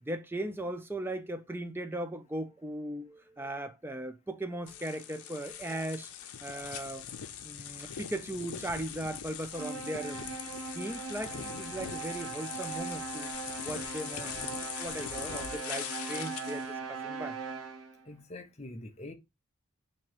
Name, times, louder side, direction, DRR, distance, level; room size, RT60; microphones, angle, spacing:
voice 1, 0.0-6.1 6.4-7.1 7.4-10.3 10.7-13.3 13.6-17.4, right 1 dB, 10° right, 0.4 m, -38 dB
sound 1, 4.7-16.7, left 9 dB, 85° left, 0.6 m, -41 dB
sound 2, 9.5-18.1, right 5 dB, 75° right, 0.7 m, -40 dB
voice 2, 18.1-19.1, left 2 dB, 30° left, 0.6 m, -44 dB
3.0 x 2.8 x 4.4 m
head